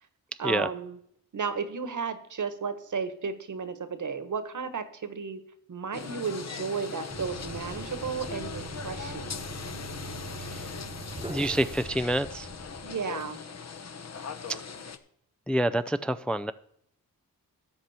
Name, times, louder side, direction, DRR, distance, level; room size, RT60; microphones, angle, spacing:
voice 1, 0.4-1.0 1.3-5.4 5.7-9.3 12.8-13.4, right 5 dB, 55° right, 11 dB, 1.5 m, -33 dB
sound 1, 5.9-15.0, left 5 dB, 45° left, 1.1 m, -40 dB
sound 2, 7.1-13.0, right 3 dB, 15° right, 1.2 m, -42 dB
voice 2, 10.4-10.7 11.3-12.5 15.5-16.5, right 1 dB, 5° left, 11 dB, 0.4 m, -27 dB
13.0 x 7.9 x 4.4 m, 0.68 s
cardioid pair, 60°, 37 cm